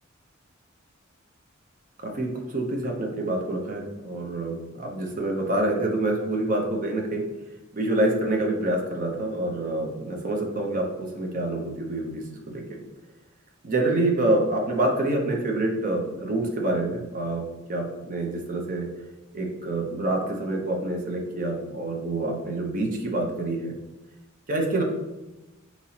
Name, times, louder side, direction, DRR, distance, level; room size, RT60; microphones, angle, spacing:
voice 1, 2.0-7.2 7.7-12.6 13.6-17.4 17.7-18.9 19.3-23.7 24.5-24.8, right 2 dB, 45° right, 1 dB, 0.7 m, -27 dB
5.4 x 3.0 x 2.8 m, 1.0 s
head